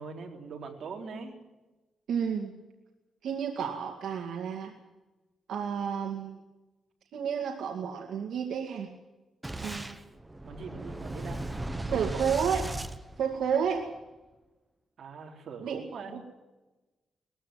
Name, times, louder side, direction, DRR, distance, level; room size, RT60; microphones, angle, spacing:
voice 1, 0.0-1.4 10.4-11.4 11.7-12.3 15.0-16.1, right 5 dB, 55° right, 2 dB, 3.8 m, -42 dB
voice 2, 2.1-2.5 3.2-4.7 5.5-6.4 7.1-8.9 9.6-10.0 11.9-12.6 13.2-13.8 15.6-15.8, right 7 dB, 80° right, 2 dB, 2.2 m, -31 dB
Boom, 9.4-13.8, right 1 dB, 10° right, 1.1 m, -37 dB
20.5 x 15.0 x 9.7 m, 1.1 s
wide cardioid pair, 150°, 0 cm